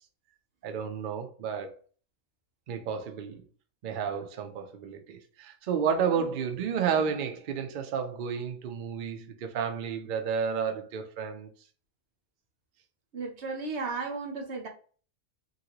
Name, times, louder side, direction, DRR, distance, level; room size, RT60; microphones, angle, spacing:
voice 1, 0.6-1.8 2.7-3.4 3.8-11.5, right 7 dB, 80° right, 0.4 m, -31 dB
voice 2, 13.1-14.7, right 4 dB, 60° right, 1.0 m, -35 dB
3.1 x 2.6 x 2.8 m
omnidirectional pair, 1.5 m